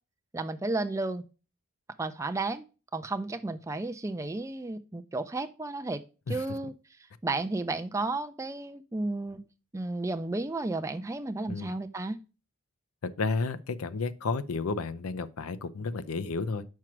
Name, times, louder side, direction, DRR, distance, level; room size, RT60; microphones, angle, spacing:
voice 1, 0.3-1.2 2.0-2.6 2.9-6.0 6.3-6.7 7.2-9.4 9.7-12.2, right 2 dB, 15° right, 0.4 m, -32 dB
voice 2, 13.0-16.7, left 4 dB, 85° left, 0.5 m, -32 dB
5.9 x 4.6 x 5.9 m
head